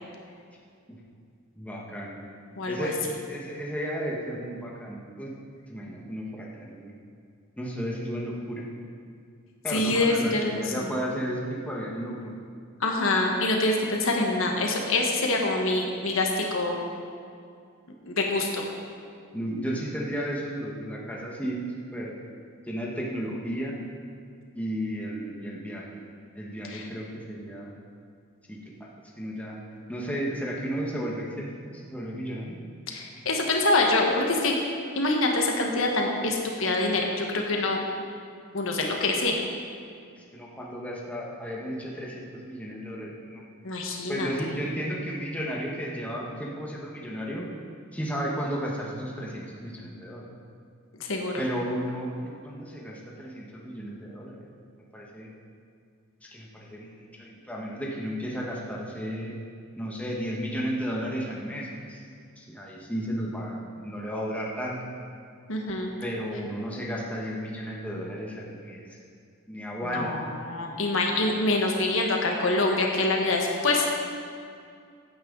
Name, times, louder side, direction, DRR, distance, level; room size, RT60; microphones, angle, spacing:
voice 1, 1.6-2.2 2.7-3.0 3.3-5.3 5.7-6.9 7.6-8.6 9.6-12.4 19.3-21.6 21.9-22.2 22.7-23.7 24.5-26.0 26.3-27.7 28.5-28.6 29.2-29.6 29.9-32.6 40.2-43.4 44.1-47.5 47.9-50.3 51.4-54.5 54.9-55.3 56.2-59.4 59.8-62.0 62.4-64.8 66.0-68.9 69.5-70.2, equal, 5° left, -3 dB, 1.4 m, -33 dB
voice 2, 2.6-2.9 9.7-10.9 12.8-16.8 18.0-18.6 26.7-26.8 32.9-34.5 34.9-37.8 38.5-39.4 43.6-44.3 51.0-51.4 65.5-65.9 69.8-73.9, left 2 dB, 65° left, 1 dB, 1.5 m, -25 dB
15.5 x 9.0 x 4.0 m, 2.3 s
head